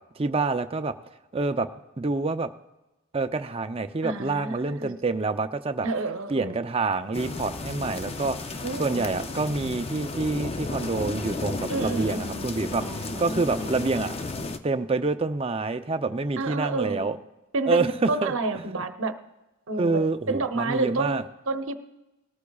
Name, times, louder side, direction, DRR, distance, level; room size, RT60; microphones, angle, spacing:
voice 1, 0.2-0.9 1.3-1.7 2.0-2.5 3.1-5.9 6.3-14.1 14.6-17.2 17.7-18.8 19.8-21.2, right 3 dB, 25° right, 9 dB, 0.5 m, -27 dB
voice 2, 4.0-4.9 5.8-6.6 8.6-9.1 11.7-12.5 12.8-13.7 16.4-17.1 17.5-19.1 19.7-21.7, right 2 dB, 60° right, 8 dB, 0.9 m, -30 dB
sound 1, 6.7-13.7, left 2 dB, 60° left, 2.7 m, -52 dB
sound 2, 7.1-14.6, left 3 dB, 25° left, 0.5 m, -34 dB
19.5 x 13.0 x 2.4 m, 1.0 s
head